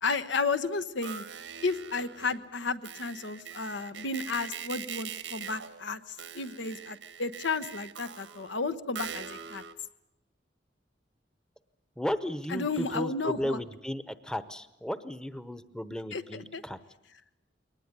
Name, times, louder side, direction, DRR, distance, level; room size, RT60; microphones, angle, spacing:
voice 1, 0.0-1.2 1.6-9.6 12.5-13.6 16.1-16.6, left 4 dB, 85° left, 10 dB, 1.1 m, -33 dB
sound 1, 0.8-2.5 2.8-9.7, right 7 dB, 85° right, 1.5 m, -43 dB
voice 2, 12.0-16.8, left 1 dB, 5° left, 13 dB, 0.8 m, -34 dB
22.0 x 19.5 x 9.7 m, 0.88 s
head